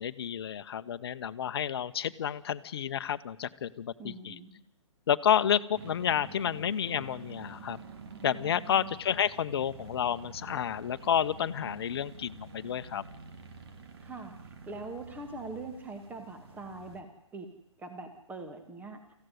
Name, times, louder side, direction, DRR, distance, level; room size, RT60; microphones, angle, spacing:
voice 1, 0.0-4.4 5.1-7.8 8.2-13.0, left 9 dB, 55° left, 13 dB, 1.0 m, -30 dB
voice 2, 4.0-4.6 8.7-8.9 14.0-17.5 17.8-19.0, right 3 dB, 10° right, 6 dB, 1.9 m, -43 dB
sound 1, 5.7-17.0, right 4 dB, 55° right, 3.0 m, -48 dB
24.5 x 15.5 x 9.6 m, 0.89 s
figure-of-eight pair, 125°, 16 cm